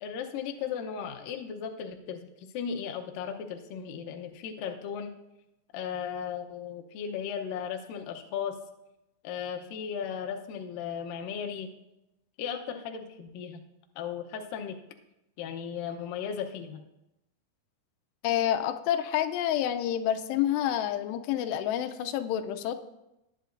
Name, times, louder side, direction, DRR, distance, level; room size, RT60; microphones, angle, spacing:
voice 1, 0.0-5.2 5.7-8.6 9.2-11.7 12.4-13.6 14.0-14.8 15.4-16.8, left 7 dB, 70° left, 3 dB, 2.3 m, -36 dB
voice 2, 18.2-22.7, left 11 dB, 90° left, 9 dB, 2.8 m, -28 dB
19.0 x 10.5 x 2.6 m, 0.91 s
omnidirectional pair, 4.8 m